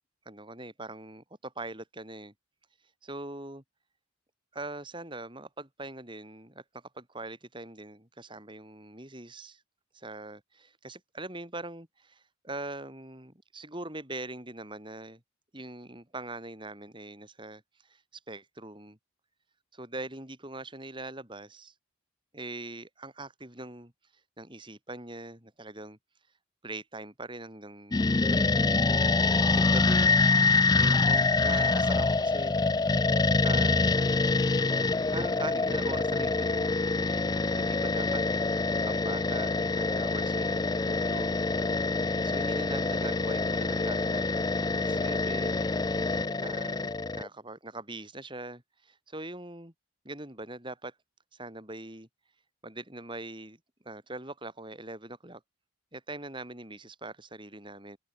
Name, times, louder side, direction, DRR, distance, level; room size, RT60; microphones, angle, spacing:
voice 1, 0.3-2.3 3.0-3.6 4.5-9.6 10.0-15.2 15.5-18.0 18.3-19.0 19.7-21.7 22.3-23.9 24.4-26.0 26.6-28.7 29.3-30.2 30.8-32.6 33.4-34.3 35.1-37.1 37.5-38.2 38.8-41.4 42.2-44.4 44.7-45.6 46.3-46.9 47.1-49.7 50.0-50.9 51.3-52.1 52.6-53.6 53.8-55.4 55.9-58.0, right 2 dB, 25° right, 4.1 m, -42 dB
sound 1, 27.9-47.3, left 3 dB, 20° left, 0.3 m, -26 dB
open air
head